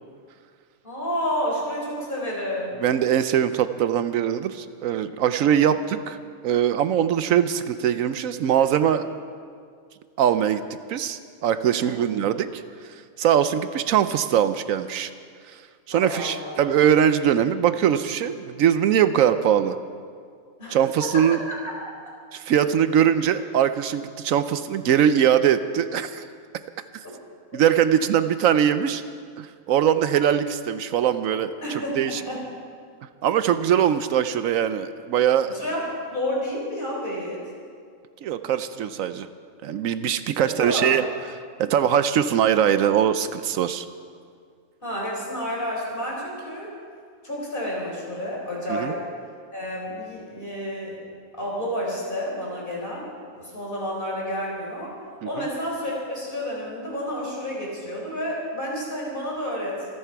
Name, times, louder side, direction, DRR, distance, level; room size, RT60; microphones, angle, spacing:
voice 1, 0.8-2.7 5.4-5.9 11.8-12.1 15.9-16.6 20.6-21.3 21.6-21.7 31.6-32.6 35.5-37.4 40.4-41.0 44.8-46.7 47.2-49.0 49.5-51.0 51.4-53.0 53.3-54.9 55.3-59.9, equal, 40° left, -3 dB, 4.7 m, -30 dB
voice 2, 2.8-6.2 6.4-9.0 10.2-10.6 10.9-15.1 15.5-15.6 15.9-19.8 20.7-21.4 22.3-26.3 27.5-29.0 29.4-31.5 32.0-32.2 33.2-35.5 38.2-39.3 39.6-41.0 41.6-43.9 48.7-48.9 55.2-55.5, right 9 dB, 80° right, 11 dB, 1.0 m, -22 dB
27.0 x 10.0 x 4.7 m, 2.1 s
omnidirectional pair, 1.4 m